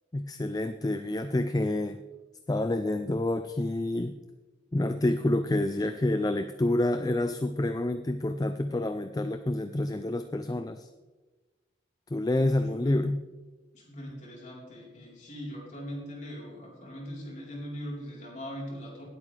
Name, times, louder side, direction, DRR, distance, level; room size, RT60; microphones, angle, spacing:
voice 1, 0.1-2.0 2.5-4.2 4.7-10.9 12.1-13.3, left 1 dB, 20° left, 9 dB, 0.4 m, -28 dB
voice 2, 12.7-13.0 13.7-19.0, equal, 40° left, -3 dB, 3.9 m, -40 dB
19.0 x 8.4 x 3.3 m, 1.2 s
head